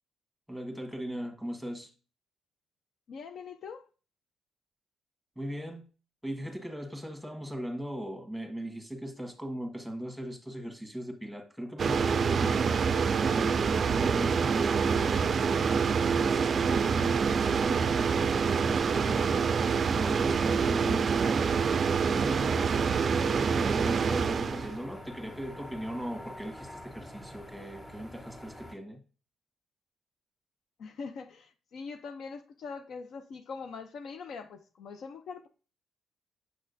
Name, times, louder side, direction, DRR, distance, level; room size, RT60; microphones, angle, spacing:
voice 1, 0.5-1.9 5.3-5.8 6.2-12.9 13.4-21.6 22.1-29.0, equal, ahead, 1.4 m, -38 dB
voice 2, 3.1-3.9 30.8-35.5, left 5 dB, 65° left, 0.5 m, -42 dB
sound 1, 11.8-24.8, right 6 dB, 45° right, 0.3 m, -26 dB
sound 2, 23.3-28.7, left 1 dB, 30° left, 2.0 m, -46 dB
6.6 x 6.3 x 2.6 m
cardioid pair, 90°, 0 cm